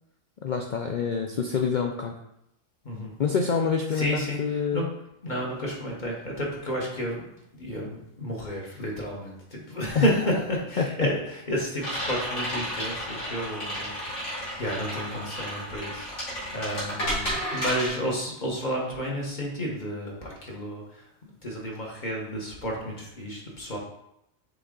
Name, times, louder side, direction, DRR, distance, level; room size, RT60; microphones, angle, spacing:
voice 1, 0.4-2.1 3.2-4.9 10.0-10.1 10.8-10.9, left 6 dB, 80° left, 3 dB, 0.4 m, -26 dB
voice 2, 2.8-3.2 3.9-4.4 4.7-4.8 5.2-7.2 7.5-16.1 16.5-21.0 21.4-23.8, equal, 35° left, -2 dB, 1.3 m, -31 dB
sound 1, 11.8-17.9, equal, 60° left, 2.9 m, -32 dB
6.9 x 3.7 x 3.7 m, 0.80 s
omnidirectional pair, 1.4 m